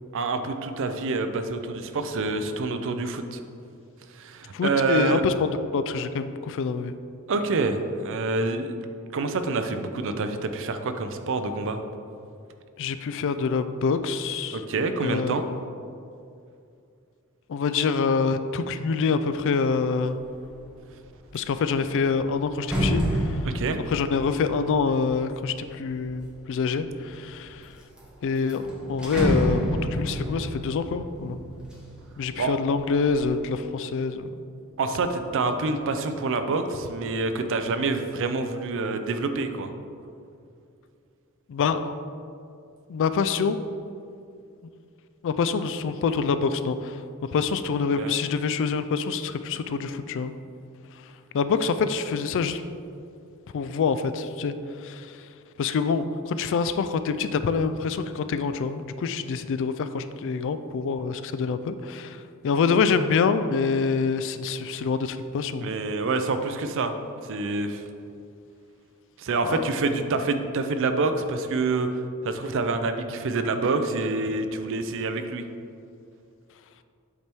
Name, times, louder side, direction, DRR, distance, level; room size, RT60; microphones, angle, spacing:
voice 1, 0.1-3.4 4.1-5.2 7.3-8.8 9.1-11.8 14.5-15.4 23.4-23.9 32.4-32.6 34.8-39.7 48.0-48.2 65.6-66.9 67.2-67.8 69.2-75.4, right 3 dB, 60° right, 8 dB, 0.5 m, -27 dB
voice 2, 4.5-6.9 12.8-14.6 15.0-15.6 17.5-20.2 21.3-23.4 23.9-27.6 28.2-31.4 32.2-34.3 41.5-41.9 42.9-43.6 45.2-47.0 47.3-50.3 51.3-52.6 53.5-54.5 54.8-55.1 55.6-65.7 69.4-69.7, left 5 dB, 60° left, 11 dB, 0.3 m, -26 dB
sound 1, 20.3-20.6 21.0-26.3 27.0-27.6 28.0-28.1 28.4-32.3 32.7-33.3, equal, 5° right, 1.1 m, -30 dB
8.2 x 3.4 x 4.4 m, 2.4 s
head